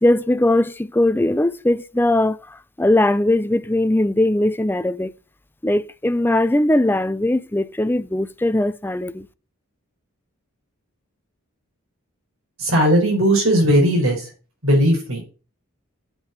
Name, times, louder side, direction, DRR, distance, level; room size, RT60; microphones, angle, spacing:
voice 1, 0.0-2.4 2.8-5.1 5.6-9.3, left 1 dB, 10° left, 0.5 m, -19 dB
voice 2, 12.6-14.3 14.6-15.2, equal, 75° right, 5.1 m, -17 dB
8.1 x 7.8 x 7.2 m
head